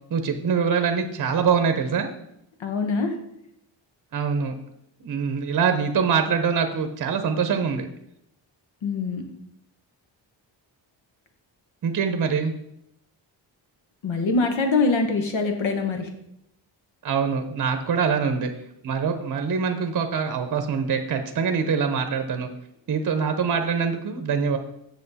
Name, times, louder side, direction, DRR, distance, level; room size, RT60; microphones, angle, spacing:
voice 1, 0.1-2.1 4.1-4.5 5.0-7.9 11.8-12.5 17.0-18.5 18.8-22.5 22.9-24.6, right 6 dB, 45° right, 7 dB, 0.7 m, -24 dB
voice 2, 2.6-3.1 8.8-9.2 14.0-16.1, left 3 dB, 90° left, 5 dB, 1.3 m, -23 dB
7.7 x 6.5 x 4.1 m, 0.80 s
wide cardioid pair, 170°, 45 cm